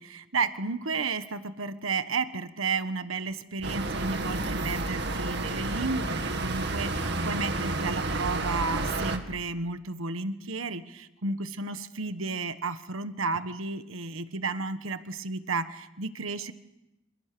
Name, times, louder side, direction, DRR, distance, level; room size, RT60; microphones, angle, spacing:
voice 1, 0.0-16.5, right 4 dB, 80° right, 11 dB, 1.4 m, -32 dB
sound 1, 3.6-9.2, right 2 dB, 55° right, 2.3 m, -30 dB
28.0 x 27.0 x 6.9 m, 0.92 s
head